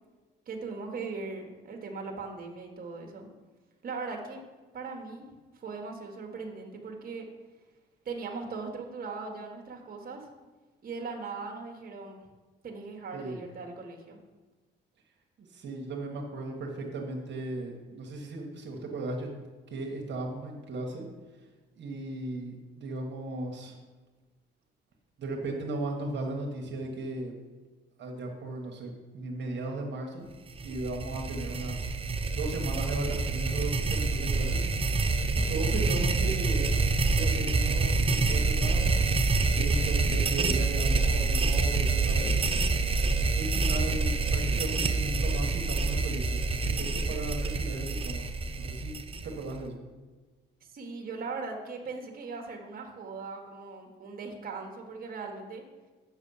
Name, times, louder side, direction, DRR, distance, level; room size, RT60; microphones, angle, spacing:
voice 1, 0.5-3.3 3.8-4.4 4.7-7.3 8.0-10.3 10.8-12.2 12.6-14.2 50.7-55.6, right 4 dB, 45° right, 2 dB, 1.4 m, -39 dB
voice 2, 15.4-19.3 19.7-21.1 21.8-23.7 25.2-27.3 28.0-30.3 30.6-31.9 32.3-36.6 37.1-39.0 39.5-42.4 43.3-48.3 48.6-49.0 49.2-49.8, right 2 dB, 65° right, 0 dB, 1.3 m, -36 dB
sound 1, 30.5-49.6, right 3 dB, 30° right, 0.6 m, -27 dB
7.2 x 6.2 x 5.5 m, 1.3 s
cardioid pair, 90°, 20 cm